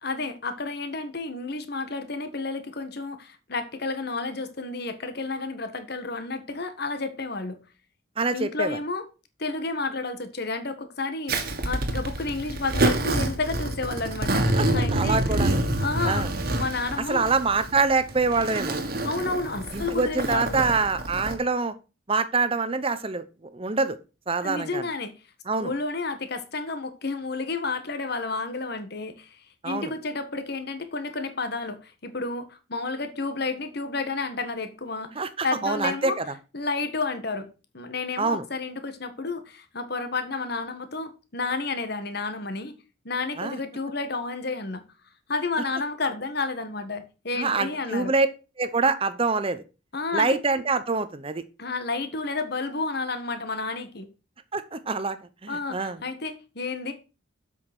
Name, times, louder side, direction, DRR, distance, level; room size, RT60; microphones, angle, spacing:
voice 1, 0.0-7.6 8.3-9.0 9.4-15.2 15.8-16.3 16.5-17.3 19.0-20.6 24.4-25.1 25.6-35.1 35.4-36.2 36.5-42.7 43.0-44.8 45.3-48.1 49.9-50.4 51.6-54.1 55.5-56.9, left 3 dB, 55° left, 1.5 m, -31 dB
voice 2, 8.2-8.8 14.5-15.6 16.0-16.3 17.1-18.8 19.7-21.7 22.1-24.0 24.3-24.8 25.5-25.7 29.6-29.9 35.2-36.3 38.2-38.4 43.4-43.6 47.4-48.3 48.6-49.6 50.1-51.4 54.5-55.2 55.4-56.0, right 4 dB, 30° right, 0.7 m, -25 dB
Zipper (clothing), 11.3-21.4, right 1 dB, 50° right, 1.7 m, -27 dB
7.8 x 6.2 x 6.0 m
head